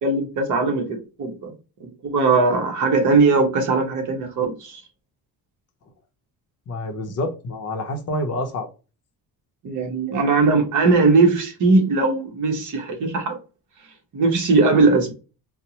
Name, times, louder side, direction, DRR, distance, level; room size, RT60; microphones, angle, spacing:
voice 1, 0.0-1.5 1.8-4.8 9.6-13.4 14.1-15.1, right 3 dB, 50° right, 1.0 m, -19 dB
voice 2, 6.7-8.7, left 1 dB, 40° left, 0.6 m, -27 dB
4.2 x 2.0 x 2.8 m
cardioid pair, 180°, 38 cm